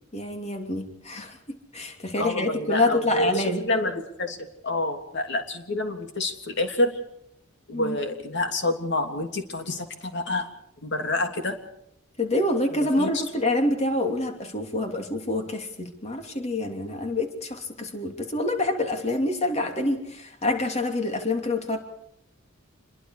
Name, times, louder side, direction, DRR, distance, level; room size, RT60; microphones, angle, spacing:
voice 1, 0.1-3.7 7.7-8.0 12.2-21.8, left 2 dB, 35° left, 4 dB, 3.0 m, -27 dB
voice 2, 2.2-4.4 4.6-7.0 7.7-10.5 10.8-11.6 12.7-13.1, left 2 dB, 60° left, 5 dB, 3.1 m, -28 dB
27.0 x 23.0 x 4.9 m, 0.76 s
head